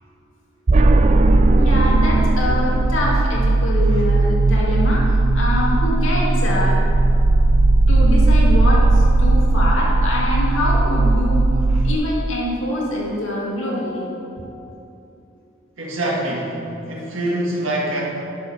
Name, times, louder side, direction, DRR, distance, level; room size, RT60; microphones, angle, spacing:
sound 1, 0.7-11.9, right 2 dB, 35° right, 0.4 m, -16 dB
voice 1, 1.6-6.8 7.9-11.4 11.8-14.1, left 1 dB, 75° left, -4 dB, 2.1 m, -24 dB
voice 2, 15.8-16.6 16.9-18.0, right 1 dB, 85° right, -3 dB, 1.9 m, -24 dB
10.5 x 5.2 x 6.1 m, 2.8 s
head